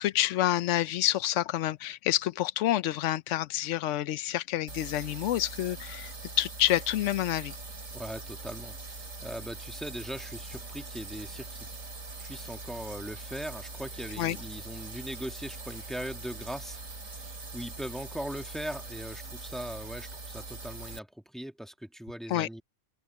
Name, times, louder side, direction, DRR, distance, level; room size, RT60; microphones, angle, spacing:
voice 1, 0.0-7.5 14.2-14.4 22.3-22.5, left 13 dB, 70° left, 0.9 m, -28 dB
sound 1, 4.7-21.0, right 3 dB, 90° right, 3.9 m, -42 dB
sound 2, 4.8-17.5, right 2 dB, 60° right, 6.6 m, -64 dB
voice 2, 7.9-11.7 12.2-22.6, equal, ahead, 1.4 m, -40 dB
open air
omnidirectional pair, 1.3 m